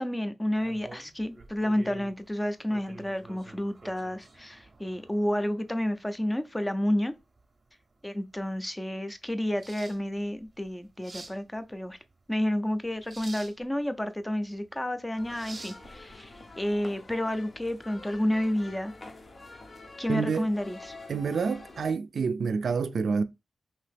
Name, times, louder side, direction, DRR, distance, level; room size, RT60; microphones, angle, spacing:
voice 1, 0.0-7.1 8.0-12.0 12.3-18.9 20.0-20.9, left 1 dB, 15° left, 0.5 m, -30 dB
sound 1, 0.6-16.8, right 2 dB, 40° right, 0.7 m, -50 dB
sound 2, 15.2-21.9, left 2 dB, 45° left, 0.7 m, -47 dB
voice 2, 20.1-20.5 21.1-23.2, right 5 dB, 75° right, 0.3 m, -28 dB
2.9 x 2.7 x 3.3 m
wide cardioid pair, 85°, 0 cm